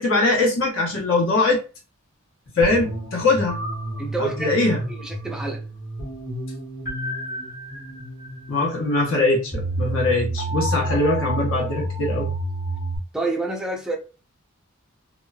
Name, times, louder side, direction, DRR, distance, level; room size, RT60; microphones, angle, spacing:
voice 1, 0.0-1.6 2.5-3.6 4.2-4.8 8.5-12.3, left 2 dB, 65° left, 1.0 m, -21 dB
sound 1, 2.6-13.0, right 1 dB, 35° left, 1.0 m, -30 dB
voice 2, 4.0-5.6 13.1-14.0, right 2 dB, 5° right, 0.3 m, -28 dB
3.0 x 2.2 x 2.3 m
head